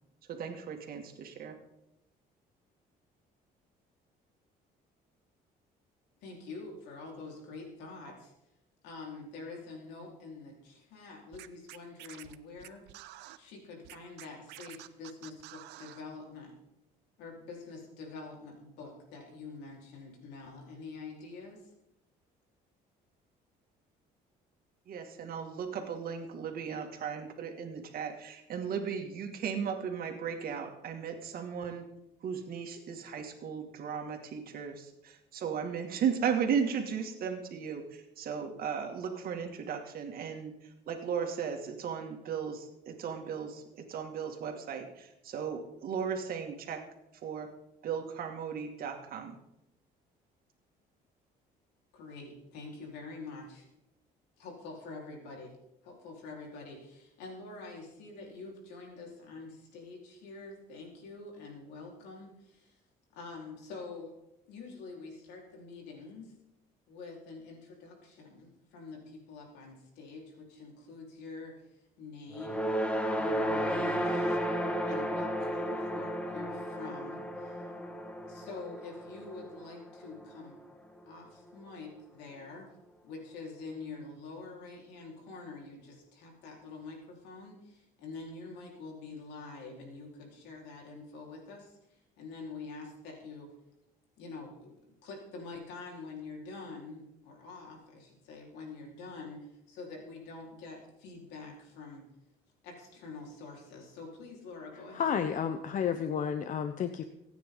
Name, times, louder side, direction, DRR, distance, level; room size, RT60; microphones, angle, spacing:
voice 1, 0.3-1.6 24.9-31.8 32.2-46.8 47.1-47.5 47.8-49.4, right 7 dB, 60° right, 4 dB, 2.3 m, -36 dB
voice 2, 6.2-8.3 8.8-12.9 13.4-16.6 17.2-21.7 51.9-53.7 54.4-55.5 55.8-62.8 63.1-64.1 64.5-66.3 66.9-72.8 73.1-74.4 74.9-77.6 78.3-80.6 81.1-82.7 83.0-93.5 94.2-94.8 95.0-102.1 102.6-105.1, left 3 dB, 90° left, -1 dB, 4.5 m, -46 dB
Scratching (performance technique), 11.3-13.4 13.8-16.0, right 16 dB, 90° right, 0.8 m, -49 dB
sound 1, 72.3-80.7, equal, 5° left, 1.8 m, -33 dB
voice 3, 104.9-107.0, left 7 dB, 50° left, 9 dB, 0.8 m, -31 dB
25.0 x 9.5 x 3.9 m, 0.88 s
cardioid pair, 110°, 17 cm